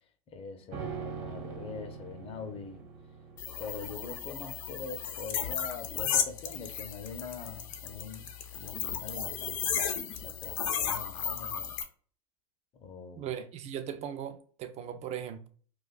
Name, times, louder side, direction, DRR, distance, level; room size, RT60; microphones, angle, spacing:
voice 1, 0.3-2.8 3.6-8.3 8.6-11.8 12.7-13.3, left 5 dB, 35° left, 0.7 m, -43 dB
sound 1, 0.7-10.1 10.4-10.5, right 6 dB, 60° right, 1.2 m, -45 dB
sound 2, 3.4-11.8, left 8 dB, 75° left, 0.7 m, -34 dB
voice 2, 13.1-15.5, right 9 dB, 40° right, 0.5 m, -38 dB
2.5 x 2.4 x 4.0 m
hypercardioid pair, 100°, 17 cm